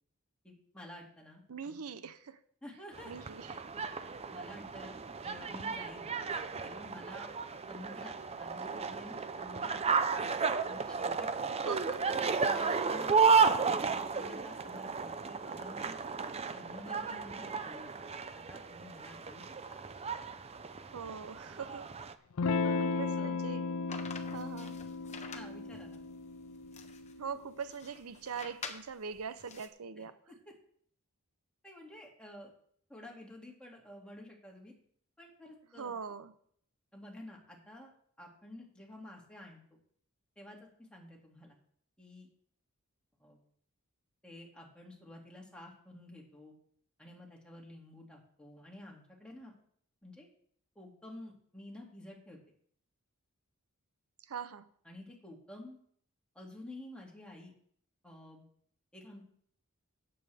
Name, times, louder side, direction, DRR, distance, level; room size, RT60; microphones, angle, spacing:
voice 1, 0.4-1.4 2.6-3.1 4.3-6.1 6.6-7.3 7.7-10.0 10.6-11.3 12.5-13.2 13.8-16.0 16.5-17.9 18.3-19.8 22.6-23.3 25.3-26.0 30.0-30.1 31.6-32.5 32.9-34.7 35.2-35.9 36.9-37.9 38.2-39.8 40.4-41.6 42.0-42.3 43.2-43.4 44.2-46.5 47.0-49.5 50.0-50.3 50.8-52.4 54.8-55.8 56.3-57.5 58.0-58.4 58.9-59.2, left 1 dB, 5° left, -1 dB, 2.4 m, -50 dB
voice 2, 1.5-2.4 3.1-3.5 11.5-12.1 20.9-21.9 22.8-23.6 24.3-24.8 27.2-30.2 35.8-36.3 54.3-54.7, right 6 dB, 80° right, 13 dB, 0.6 m, -42 dB
sound 1, 2.9-22.1, right 5 dB, 30° right, 0.5 m, -33 dB
Electric guitar / Strum, 22.4-27.5, left 4 dB, 70° left, 0.5 m, -35 dB
sound 2, 23.9-29.7, left 5 dB, 30° left, 1.0 m, -48 dB
16.5 x 7.8 x 3.5 m, 0.62 s
head